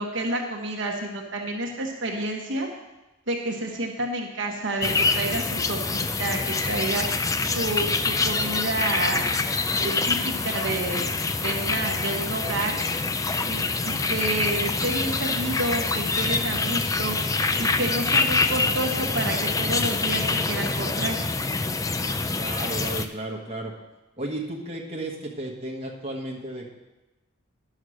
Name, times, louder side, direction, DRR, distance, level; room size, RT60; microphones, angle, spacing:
voice 1, 0.0-2.7 3.3-7.1 7.4-9.3 9.8-11.1 11.4-12.8 13.4-17.2 17.6-21.2, right 2 dB, 60° right, 0 dB, 1.3 m, -29 dB
sound 1, 4.8-23.1, left 3 dB, 15° left, 0.3 m, -26 dB
voice 2, 22.4-23.7 24.2-26.7, right 1 dB, 30° right, -2 dB, 1.4 m, -33 dB
10.5 x 6.4 x 6.4 m, 1.0 s
head